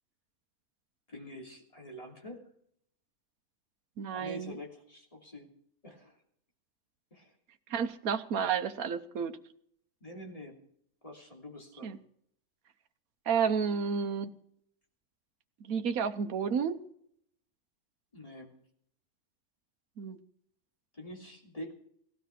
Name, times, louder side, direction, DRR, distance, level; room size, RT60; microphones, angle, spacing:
voice 1, 1.1-2.5 4.1-5.5 5.8-6.2 7.1-7.3 10.0-10.6 11.0-11.9 18.1-18.5 20.9-21.7, left 1 dB, 25° left, 0 dB, 3.1 m, -46 dB
voice 2, 4.0-4.5 7.7-9.4 11.8-12.0 13.3-14.3 15.6-16.8 20.0-20.2, right 6 dB, 75° right, 7 dB, 1.4 m, -31 dB
17.0 x 12.5 x 5.9 m, 0.68 s
omnidirectional pair, 1.5 m